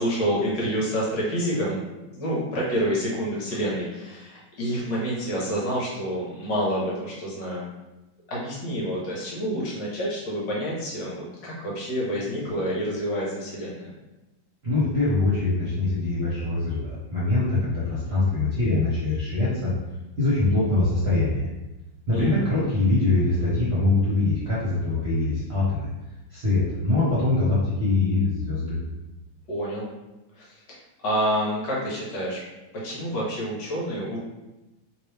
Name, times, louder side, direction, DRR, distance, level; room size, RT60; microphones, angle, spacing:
voice 1, 0.0-1.8 2.1-7.7 8.3-13.9 22.1-22.5 29.5-29.9 30.4-30.8 31.0-32.4 32.7-34.2, equal, 70° left, -5 dB, 1.6 m, -28 dB
voice 2, 14.6-19.7 20.2-21.5 22.1-25.9 26.3-28.8, left 2 dB, 40° right, -9 dB, 1.2 m, -23 dB
3.1 x 3.0 x 3.3 m, 1.0 s
omnidirectional pair, 2.1 m